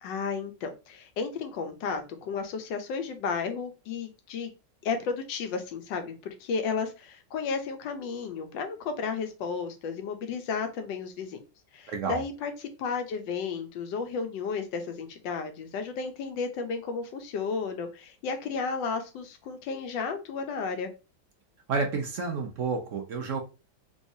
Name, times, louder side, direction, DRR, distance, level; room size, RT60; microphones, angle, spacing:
voice 1, 0.0-4.5 4.8-11.4 11.7-12.5 12.8-20.9, left 5 dB, 80° left, 1.4 m, -33 dB
voice 2, 11.9-12.2 21.7-23.4, right 4 dB, 70° right, 0.7 m, -30 dB
3.4 x 3.2 x 2.6 m
omnidirectional pair, 2.0 m